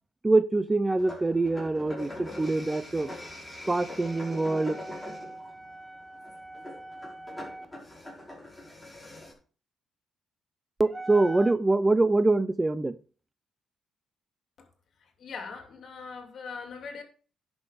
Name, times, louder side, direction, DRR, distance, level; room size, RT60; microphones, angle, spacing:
voice 1, 0.2-3.1 3.7-7.7 10.8-13.0, right 2 dB, 15° right, 0.6 m, -26 dB
sound 1, 1.0-9.3, left 1 dB, 10° left, 5.3 m, -43 dB
voice 2, 15.0-17.0, left 5 dB, 60° left, 2.7 m, -41 dB
10.5 x 6.1 x 5.0 m
cardioid pair, 90°, 0 cm